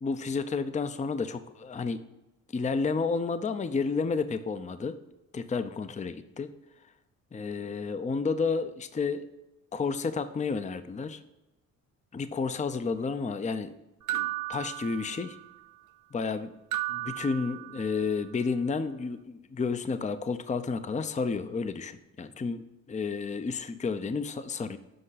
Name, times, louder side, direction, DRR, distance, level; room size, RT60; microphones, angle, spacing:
voice 1, 0.0-2.0 2.5-4.9 5.3-6.5 7.3-9.2 9.7-11.2 12.1-13.8 14.1-15.4 16.1-16.5 16.9-24.8, left 4 dB, 20° left, 11 dB, 0.5 m, -31 dB
sound 1, 14.1-15.6 16.7-18.2, right 15 dB, 60° right, 0.5 m, -35 dB
7.8 x 5.3 x 4.0 m, 0.98 s
supercardioid pair, 65°, 34 cm